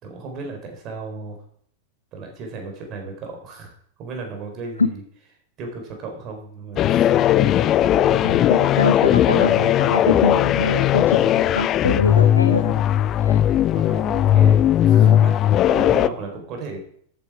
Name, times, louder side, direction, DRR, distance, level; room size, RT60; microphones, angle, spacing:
voice 1, 0.0-1.4 2.1-5.0 5.6-7.1 8.1-8.3 13.3-16.8, right 3 dB, 35° right, 3 dB, 4.1 m, -35 dB
sound 1, 6.8-16.1, left 11 dB, 30° left, 0.4 m, -17 dB
voice 2, 8.2-13.4 15.0-15.3, left 4 dB, 75° left, 12 dB, 0.6 m, -24 dB
13.5 x 8.5 x 4.9 m, 0.63 s
figure-of-eight pair, 90°, 0 cm